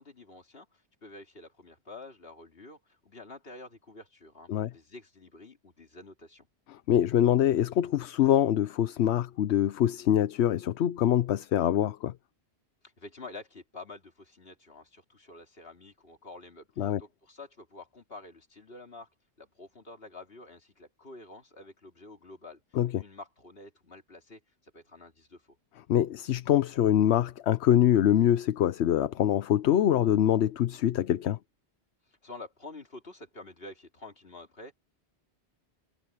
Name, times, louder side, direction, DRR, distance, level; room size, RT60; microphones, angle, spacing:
voice 1, 0.0-6.5 12.8-19.1 19.4-25.5 32.1-34.7, left 2 dB, 60° left, 3.2 m, -48 dB
voice 2, 6.9-12.1 16.8-17.0 22.8-23.0 25.9-31.4, left 11 dB, 75° left, 0.9 m, -24 dB
omnidirectional pair, 1.1 m